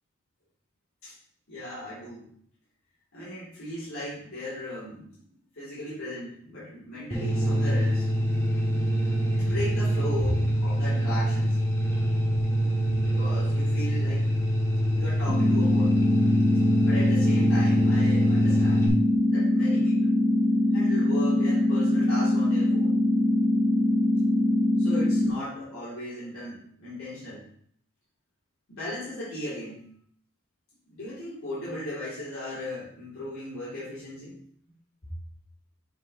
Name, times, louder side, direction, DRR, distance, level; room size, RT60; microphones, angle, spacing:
voice 1, 1.5-2.3 3.1-5.3 5.6-8.1 9.3-11.6 12.6-14.3 15.0-16.0 16.8-18.9 19.3-20.2 20.7-23.0 24.8-27.4 28.7-29.8 30.9-34.4 35.0-35.1, left 1 dB, 85° left, -10 dB, 2.8 m, -37 dB
sound 1, 7.1-18.9, equal, 15° left, 1.3 m, -25 dB
sound 2, 15.3-25.3, left 1 dB, 35° right, 1.8 m, -23 dB
7.4 x 4.7 x 3.0 m, 0.63 s
head